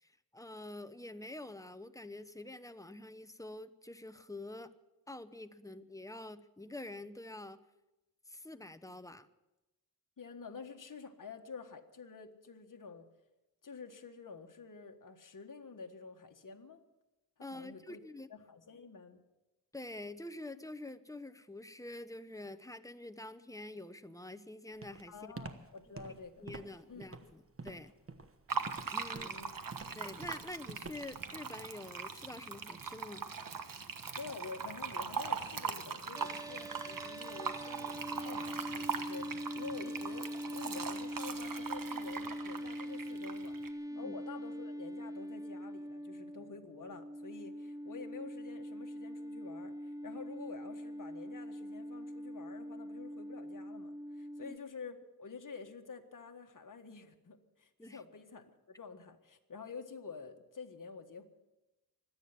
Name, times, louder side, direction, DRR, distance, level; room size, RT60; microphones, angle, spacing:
voice 1, 0.0-4.7 5.1-7.6 8.3-9.3 17.4-18.3 19.7-25.3 26.4-27.9 28.9-29.3 30.0-33.3 43.9-44.2 54.4-54.6 57.8-58.0, left 2 dB, 10° left, 11 dB, 0.8 m, -47 dB
voice 2, 10.2-13.1 13.6-16.8 17.5-18.0 18.3-19.2 25.1-26.5 26.9-27.1 29.1-29.5 29.8-30.1 34.2-61.2, left 5 dB, 55° left, 4 dB, 1.6 m, -49 dB
Walk footsteps, 24.8-31.3, right 3 dB, 35° right, 1.3 m, -48 dB
Fill (with liquid), 28.5-43.7, right 6 dB, 60° right, 1.3 m, -41 dB
sound 1, 36.1-54.6, equal, 10° right, 0.5 m, -43 dB
24.5 x 9.3 x 5.9 m, 1.0 s
wide cardioid pair, 80°, 38 cm